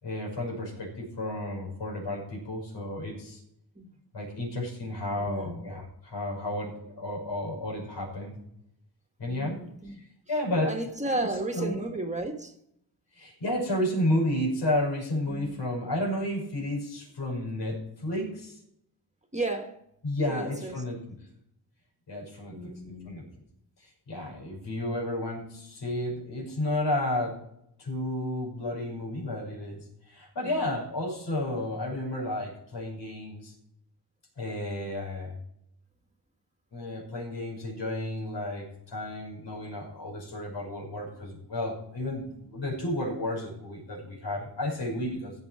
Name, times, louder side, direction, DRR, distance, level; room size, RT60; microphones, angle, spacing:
voice 1, 0.0-3.4 4.1-8.4 9.2-9.6 9.9-10.7 11.1-11.3 11.5-11.8 13.1-18.6 20.0-21.0 22.1-23.2 23.8-27.4 27.8-33.5 34.4-35.3 36.7-45.3, left 1 dB, 80° left, 6.1 m, -32 dB
voice 2, 5.2-5.6 9.3-10.0 10.6-12.5 15.3-15.6 19.3-19.8 20.3-20.8 22.5-23.2 30.4-30.5, right 2 dB, 15° right, 1.5 m, -34 dB
16.5 x 7.3 x 4.8 m
wide cardioid pair, 105°, 42 cm